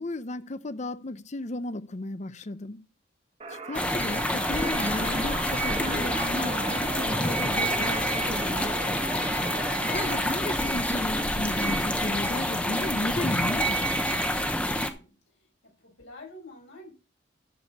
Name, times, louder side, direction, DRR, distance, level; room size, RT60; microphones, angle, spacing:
voice 1, 0.0-2.8 3.7-9.1 9.9-14.2, left 2 dB, 40° left, 0.6 m, -34 dB
sound 1, 3.4-10.6, right 3 dB, 35° right, 1.4 m, -37 dB
sound 2, 3.7-14.9, equal, 5° left, 0.9 m, -27 dB
voice 2, 14.8-15.1 15.6-16.9, left 2 dB, 80° left, 6.2 m, -47 dB
11.0 x 6.9 x 4.2 m
head